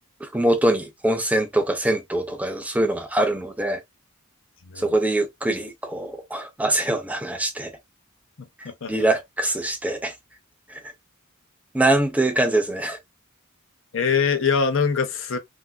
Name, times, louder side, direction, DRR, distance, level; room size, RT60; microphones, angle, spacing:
voice 1, 0.2-3.8 4.8-7.7 8.9-10.1 10.7-10.8 11.7-13.0, right 1 dB, 5° right, 0.4 m, -23 dB
voice 2, 13.9-15.4, left 5 dB, 60° left, 0.6 m, -23 dB
3.3 x 2.5 x 2.2 m
head